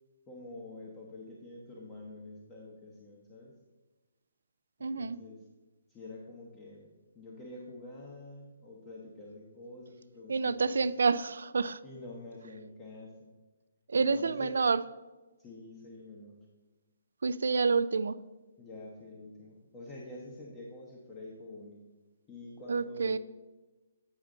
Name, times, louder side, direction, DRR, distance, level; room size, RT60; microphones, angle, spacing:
voice 1, 0.3-3.5 4.8-5.4 5.9-6.8 7.1-10.9 11.8-13.3 13.9-14.6 15.4-16.4 18.6-21.8 22.3-23.2, left 2 dB, 20° left, -3 dB, 1.0 m, -47 dB
voice 2, 4.8-5.2 10.3-11.8 13.9-14.8 17.2-18.2 22.7-23.2, right 4 dB, 75° right, 15 dB, 0.3 m, -28 dB
8.9 x 5.1 x 3.8 m, 1.2 s
hypercardioid pair, 150°, 0 cm